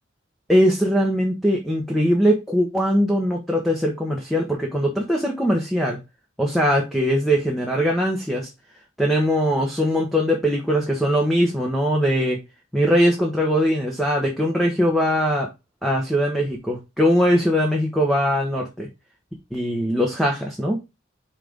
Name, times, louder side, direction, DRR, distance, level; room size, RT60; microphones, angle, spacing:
voice 1, 0.5-6.0 6.4-8.5 9.0-12.4 12.7-15.5 15.8-18.9 19.5-20.8, equal, ahead, -1 dB, 1.0 m, -21 dB
5.7 x 3.3 x 5.1 m, 0.24 s
head